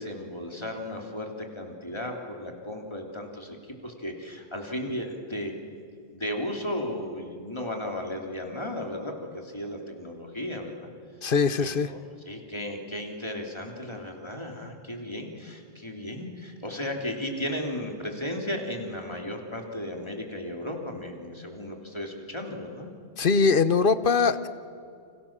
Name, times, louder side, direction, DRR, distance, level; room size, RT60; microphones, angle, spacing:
voice 1, 0.0-5.5 6.1-10.9 11.6-12.0 12.3-22.9, left 1 dB, 25° left, 2 dB, 3.2 m, -35 dB
voice 2, 11.2-11.9 23.2-24.5, left 5 dB, 55° left, 13 dB, 1.1 m, -22 dB
29.5 x 26.0 x 7.4 m, 2.4 s
omnidirectional pair, 1.1 m